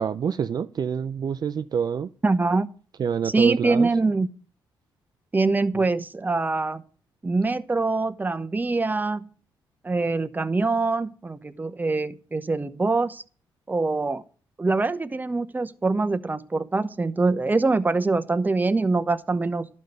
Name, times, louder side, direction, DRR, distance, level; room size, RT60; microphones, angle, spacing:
voice 1, 0.0-2.1 3.0-3.9 5.7-5.8, right 7 dB, 50° right, 0.5 m, -26 dB
voice 2, 2.2-2.7 3.2-4.3 5.3-6.8 7.2-9.3 9.8-13.2 13.7-14.2 14.6-19.7, right 3 dB, 20° right, 0.9 m, -24 dB
11.5 x 5.4 x 7.9 m
cardioid pair, 70°, 9 cm